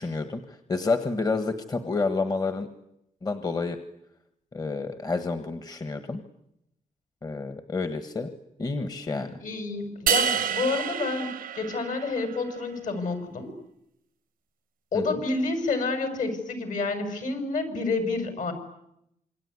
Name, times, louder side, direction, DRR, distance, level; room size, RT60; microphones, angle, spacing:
voice 1, 0.0-2.7 3.2-3.8 4.5-6.2 7.2-8.3 8.6-9.4 14.9-15.2, left 3 dB, 25° left, 8 dB, 1.5 m, -29 dB
voice 2, 9.4-13.5 14.9-18.5, left 3 dB, 65° left, 7 dB, 6.2 m, -29 dB
sound 1, 10.1-12.4, right 8 dB, 75° right, 1.0 m, -28 dB
27.0 x 23.0 x 9.7 m, 0.82 s
wide cardioid pair, 140°, 15 cm